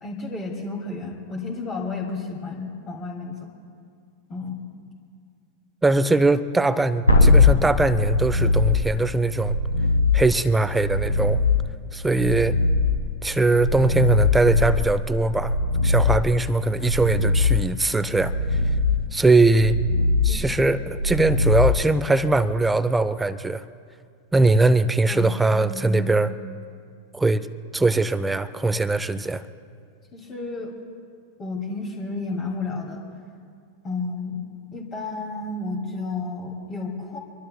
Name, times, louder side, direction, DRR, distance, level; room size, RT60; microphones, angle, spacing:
voice 1, 0.0-3.5 4.3-4.7 20.3-20.4 25.1-26.2 30.1-30.7 31.4-33.0 33.8-34.5 34.7-37.2, left 3 dB, 30° left, 0 dB, 2.5 m, -32 dB
voice 2, 5.8-9.6 10.1-11.4 11.9-12.5 13.2-15.5 15.8-18.3 19.1-19.8 20.2-23.6 24.3-26.3 27.1-27.5 27.7-29.4, right 2 dB, 10° right, 14 dB, 0.6 m, -21 dB
sound 1, 7.1-22.4 25.5-25.6, left 3 dB, 80° left, 1.5 m, -21 dB
26.0 x 22.5 x 2.3 m, 2.2 s
figure-of-eight pair, 90°, 0 cm